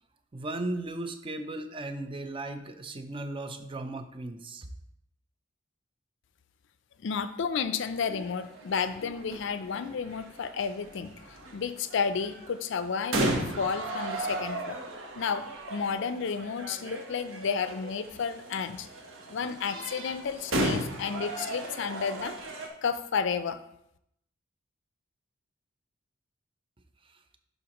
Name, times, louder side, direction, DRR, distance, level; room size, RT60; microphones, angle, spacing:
voice 1, 0.3-4.7, right 2 dB, 25° right, 8 dB, 0.5 m, -36 dB
voice 2, 7.0-14.8 15.1-18.9 19.3-22.4 22.8-23.6, left 6 dB, 60° left, 12 dB, 0.4 m, -32 dB
sound 1, 8.0-22.7, right 1 dB, 70° right, 1.1 m, -36 dB
11.0 x 3.9 x 3.0 m, 0.77 s
head